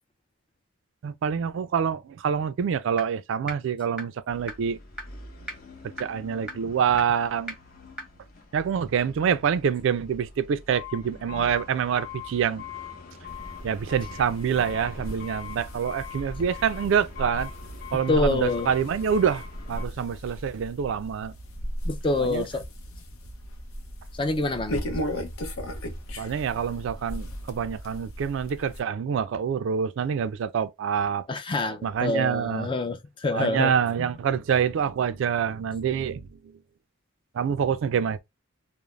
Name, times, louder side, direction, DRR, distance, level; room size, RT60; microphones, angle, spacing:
voice 1, 1.0-4.8 6.0-7.5 8.5-12.6 13.6-17.5 17.9-21.3 22.2-22.4 26.2-31.3 31.8-32.7 33.3-36.3 37.3-38.2, right 7 dB, 65° right, 0.3 m, -26 dB
sound 1, 3.0-3.1 3.5-3.6 4.0-4.1 4.5-4.6 5.0-5.1 5.5-5.6 6.0-6.1 6.5-6.6 7.0-7.1 7.5-7.6 8.0-8.1, equal, 5° right, 0.7 m, -34 dB
sound 2, 4.3-19.8, left 6 dB, 45° left, 0.7 m, -43 dB
sound 3, 13.3-28.8, equal, 85° left, 0.7 m, -37 dB
voice 2, 18.1-18.7 21.8-22.6 24.1-24.8 31.3-34.1, left 2 dB, 25° left, 0.4 m, -27 dB
2.4 x 2.0 x 3.1 m
head